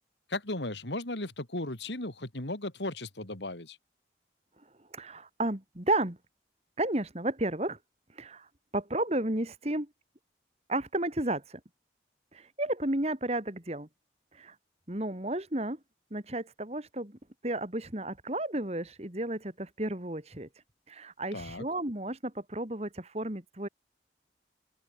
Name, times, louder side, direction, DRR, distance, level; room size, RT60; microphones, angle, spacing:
voice 1, 0.3-3.8 21.3-21.7, left 2 dB, 80° left, 3.6 m, -36 dB
voice 2, 4.9-6.2 6.8-7.8 8.2-8.5 8.7-9.9 10.7-11.6 12.3-13.9 14.4-14.5 14.9-15.8 16.1-20.5 20.9-23.7, right 1 dB, 35° right, 2.3 m, -32 dB
open air
head